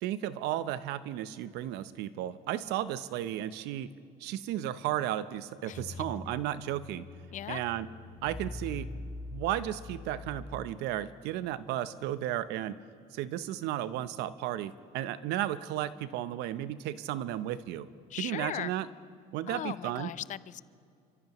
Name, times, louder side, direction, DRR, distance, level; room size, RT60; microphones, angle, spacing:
voice 1, 0.0-3.9 4.2-7.1 7.5-7.9 8.2-8.9 9.3-12.8 13.1-17.9 18.2-18.9 19.3-20.1, right 12 dB, 75° right, 14 dB, 0.8 m, -34 dB
sound 1, 5.7-11.1, left 3 dB, 5° left, 5.2 m, -43 dB
voice 2, 18.1-18.7 19.5-20.6, left 12 dB, 45° left, 19 dB, 0.4 m, -38 dB
29.0 x 14.0 x 3.1 m, 2.4 s
supercardioid pair, 85°, 18 cm